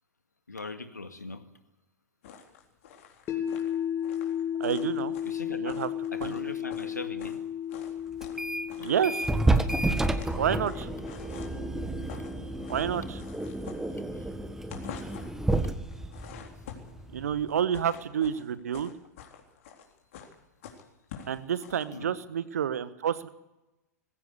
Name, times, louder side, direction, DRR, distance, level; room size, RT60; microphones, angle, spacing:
voice 1, 0.5-1.4 5.2-5.8 6.1-7.4 14.1-14.3 21.9-22.1, left 3 dB, 80° left, 8 dB, 2.1 m, -40 dB
sound 1, 2.2-7.4 7.7-8.4 8.7-11.6 11.9-12.3 12.6-14.3 14.6-15.4 15.9-17.0 17.5-21.8, left 8 dB, 50° left, 3.8 m, -47 dB
sound 2, 3.3-15.4, left 9 dB, 25° left, 2.6 m, -36 dB
voice 2, 4.6-5.1 5.6-5.9 6.2-6.3 8.8-9.3 10.4-10.9 12.7-13.2 17.1-18.9 21.3-23.3, right 8 dB, 60° right, 15 dB, 1.3 m, -29 dB
sound 3, 8.2-8.7 9.0-17.5, right 2 dB, 5° right, 1.5 m, -30 dB
21.0 x 16.0 x 8.4 m, 0.97 s
figure-of-eight pair, 95°, 9 cm